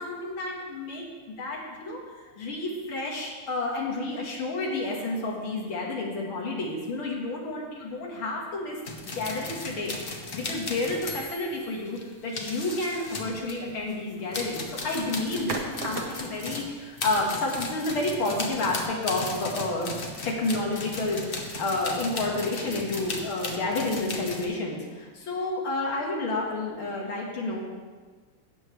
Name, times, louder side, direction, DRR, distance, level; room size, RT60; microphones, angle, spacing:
voice 1, 0.0-8.8 9.1-19.9 20.2-27.6, left 2 dB, 75° left, -2 dB, 2.3 m, -30 dB
sound 1, 8.8-13.9 14.3-24.4, left 2 dB, 45° left, 0.7 m, -36 dB
sound 2, 11.5-11.8 14.0-14.3 15.5-16.6, right 4 dB, 70° right, 1.7 m, -36 dB
16.0 x 6.9 x 3.1 m, 1.4 s
omnidirectional pair, 2.3 m